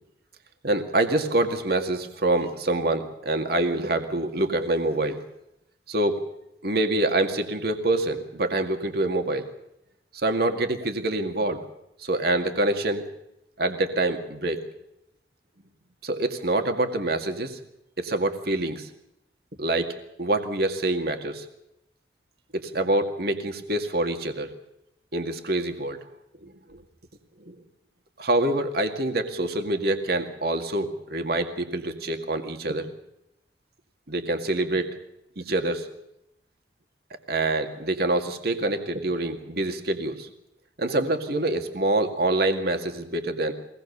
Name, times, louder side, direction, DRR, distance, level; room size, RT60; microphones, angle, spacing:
voice 1, 0.6-5.2 5.9-6.2 6.6-9.5 10.1-11.6 12.0-13.0 13.6-14.6 16.0-17.6 18.0-18.9 19.6-19.9 20.2-21.4 22.5-24.5 25.1-26.0 26.4-26.8 27.5-27.6 28.2-32.9 34.1-34.9 35.4-35.9 37.3-40.3 40.8-43.5, right 2 dB, 60° right, 6 dB, 2.1 m, -26 dB
23.0 x 19.0 x 6.8 m, 0.83 s
head